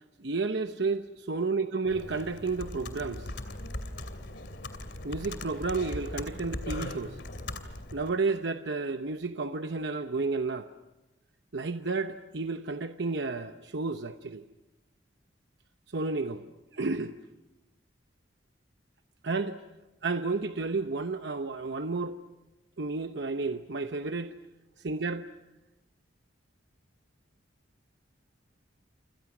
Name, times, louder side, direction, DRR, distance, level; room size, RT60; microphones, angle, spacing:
voice 1, 0.2-3.3 5.0-7.2 7.9-10.7 11.5-14.4 15.9-16.5 16.7-17.1 19.2-19.6 20.0-22.2 22.8-24.3 24.8-25.3, right 3 dB, 75° right, 0.9 m, -31 dB
Computer keyboard, 1.9-8.1, left 1 dB, 70° left, 2.7 m, -39 dB
29.0 x 26.5 x 6.1 m
head